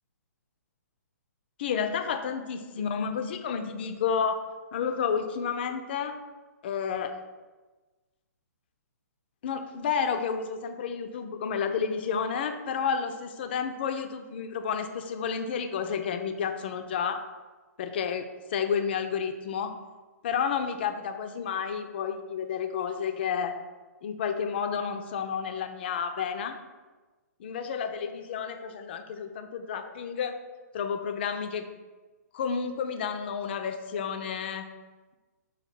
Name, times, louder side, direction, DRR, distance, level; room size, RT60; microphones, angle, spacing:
voice 1, 1.6-4.4 4.7-6.2 6.6-7.1 9.4-17.2 17.8-19.7 20.2-23.5 24.0-26.6 27.4-30.4 30.7-31.7 32.3-34.7, left 6 dB, 35° left, 7 dB, 0.3 m, -31 dB
4.3 x 2.3 x 4.3 m, 1.3 s
figure-of-eight pair, 125°, 9 cm